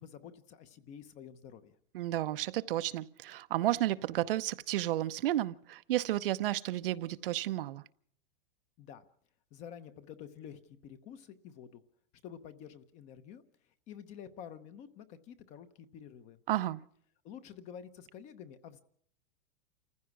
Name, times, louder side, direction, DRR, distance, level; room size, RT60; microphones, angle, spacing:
voice 1, 0.0-1.8 8.8-9.0 9.5-11.8 12.2-13.4 13.9-16.4 17.2-18.8, left 8 dB, 25° left, 0.9 m, -49 dB
voice 2, 1.9-7.8 16.5-16.8, right 14 dB, 65° right, 0.8 m, -32 dB
28.0 x 15.0 x 6.1 m
supercardioid pair, 170°, 30 cm